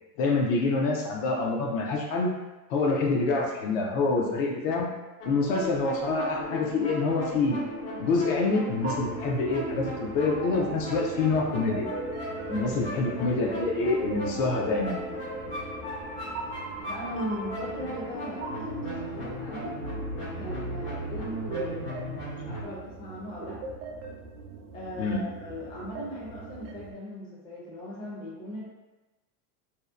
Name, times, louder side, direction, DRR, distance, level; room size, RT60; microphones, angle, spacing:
voice 1, 0.2-2.3 2.7-4.9 5.2-7.6 8.0-11.9 12.5-15.0 25.0-25.2, left 3 dB, 60° left, 0 dB, 0.6 m, -26 dB
sound 1, 5.2-22.6, equal, 80° left, 1.3 m, -36 dB
sound 2, 8.8-26.9, right 3 dB, 60° right, 0.6 m, -41 dB
voice 2, 16.9-19.8 20.3-21.9 22.4-23.6 24.7-28.6, equal, 10° left, -6 dB, 0.5 m, -38 dB
2.7 x 2.0 x 2.4 m, 1.1 s
supercardioid pair, 130°, 46 cm